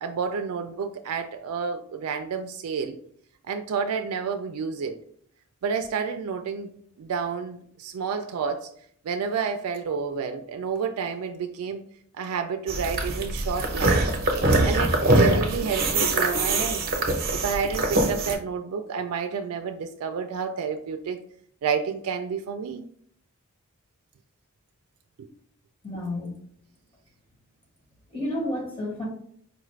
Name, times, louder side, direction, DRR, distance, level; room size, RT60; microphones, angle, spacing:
voice 1, 0.0-3.0 3.5-5.0 5.6-6.7 7.0-8.7 9.0-11.8 12.2-14.1 14.6-16.8 17.3-21.2 21.6-22.9, right 6 dB, 85° right, 6 dB, 0.3 m, -30 dB
sound 1, 12.7-18.4, right 2 dB, 45° right, 0.7 m, -23 dB
voice 2, 25.8-26.3 28.1-29.0, left 1 dB, 25° left, -2 dB, 1.1 m, -30 dB
4.9 x 2.4 x 3.1 m, 0.63 s
head